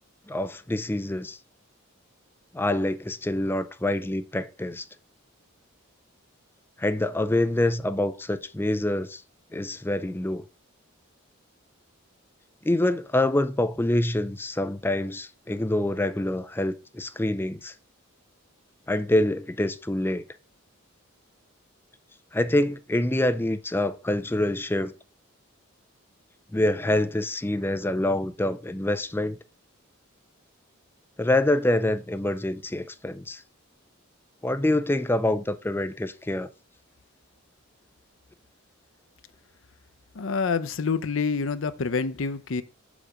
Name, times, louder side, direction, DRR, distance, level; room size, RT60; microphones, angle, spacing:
voice 1, 0.3-1.4 2.5-4.9 6.8-9.2 9.5-10.4 12.6-17.7 18.9-20.2 22.3-24.9 26.5-29.4 31.2-33.4 34.4-36.5, left 1 dB, 10° left, 0.4 m, -26 dB
voice 2, 40.1-42.6, left 5 dB, 65° left, 0.6 m, -27 dB
6.3 x 5.0 x 4.9 m
head